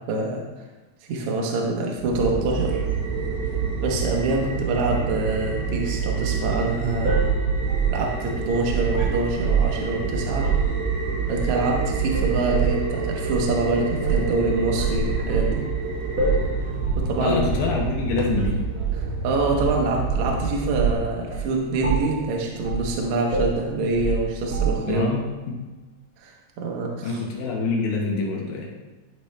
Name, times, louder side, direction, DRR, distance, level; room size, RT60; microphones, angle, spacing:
voice 1, 0.1-0.4 1.1-2.8 3.8-7.2 7.9-10.5 11.3-15.6 17.0-17.4 19.0-25.1 26.2-27.2, right 2 dB, 65° right, -1 dB, 1.9 m, -25 dB
sound 1, 2.0-20.9, right 5 dB, 85° right, 2.9 m, -27 dB
sound 2, 7.0-9.8 10.3-10.7 11.3-11.8 12.1-12.7 13.3-13.4 14.0-14.3 14.8-15.6 16.2-16.5 16.8-17.1 17.3-17.6 18.4-19.0 19.6-20.3 20.7-21.0 21.3-21.5 21.8-22.2 22.6-22.9 23.3-25.0, right 5 dB, 45° right, 1.9 m, -25 dB
voice 2, 17.2-18.6 24.9-25.6 27.0-28.7, left 4 dB, 75° left, -2 dB, 2.7 m, -26 dB
12.0 x 4.2 x 3.2 m, 1.2 s
omnidirectional pair, 4.2 m